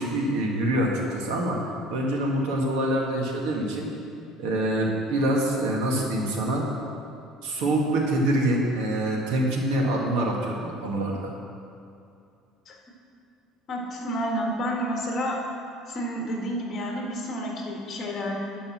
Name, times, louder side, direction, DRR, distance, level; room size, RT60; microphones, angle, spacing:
voice 1, 0.0-1.6 1.9-3.9 4.4-6.6 7.4-11.3, right 1 dB, 80° right, -1 dB, 1.9 m, -25 dB
voice 2, 13.7-15.4 15.9-18.4, equal, 35° left, -1 dB, 1.5 m, -30 dB
10.5 x 5.3 x 7.4 m, 2.5 s
cardioid pair, 165°, 0 cm